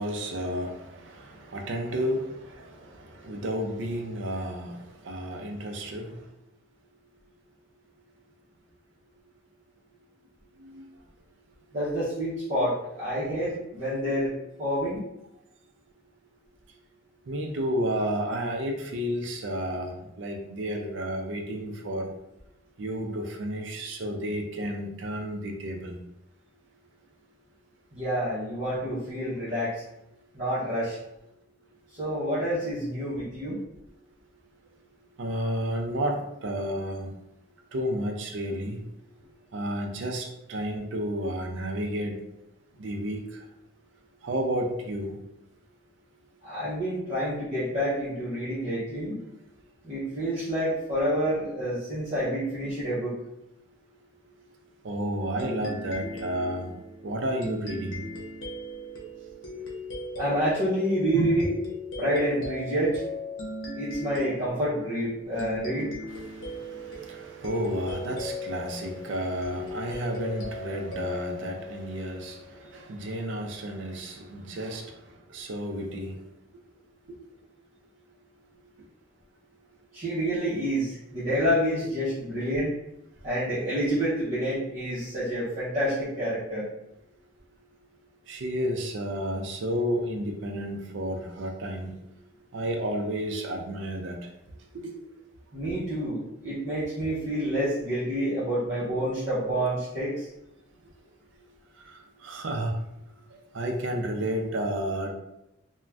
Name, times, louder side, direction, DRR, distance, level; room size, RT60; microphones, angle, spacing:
voice 1, 0.0-6.3 10.6-10.9 17.3-22.1 22.8-26.0 35.2-37.1 37.7-38.9 39.5-42.2 42.8-43.5 44.2-45.2 54.8-56.8 57.0-58.1 61.1-61.5 65.3-65.5 66.1-76.2 77.1-77.2 88.3-92.0 92.5-94.3 94.7-94.9 101.8-102.9 103.5-105.1, equal, 70° right, 2 dB, 0.4 m, -32 dB
voice 2, 11.7-15.0 27.9-29.8 30.3-31.0 32.0-33.6 46.4-49.2 49.8-53.1 60.2-61.5 62.0-63.0 63.7-65.9 79.9-82.7 83.2-86.7 95.5-100.3, equal, 40° right, -11 dB, 0.7 m, -28 dB
sound 1, 55.4-72.6, left 1 dB, 85° left, 0.7 m, -38 dB
2.5 x 2.1 x 3.3 m, 0.88 s
head